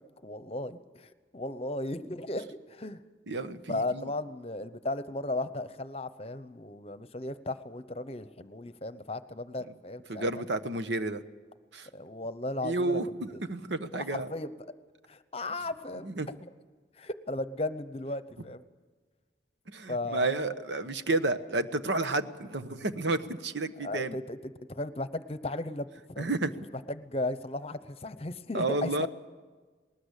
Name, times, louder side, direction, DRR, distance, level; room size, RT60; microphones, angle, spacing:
voice 1, 0.2-3.0 3.7-10.4 11.9-13.0 13.3-13.4 13.9-14.5 15.1-16.1 16.4-16.5 17.0-18.6 19.9-20.5 23.8-25.9 26.1-29.1, left 2 dB, 35° left, 12 dB, 0.8 m, -36 dB
voice 2, 3.3-4.1 10.1-11.2 11.7-11.9 12.6-14.3 16.0-16.3 19.7-24.1 26.2-26.6 28.5-29.1, right 2 dB, 80° right, 10 dB, 1.1 m, -31 dB
20.0 x 19.5 x 8.3 m, 1.4 s
head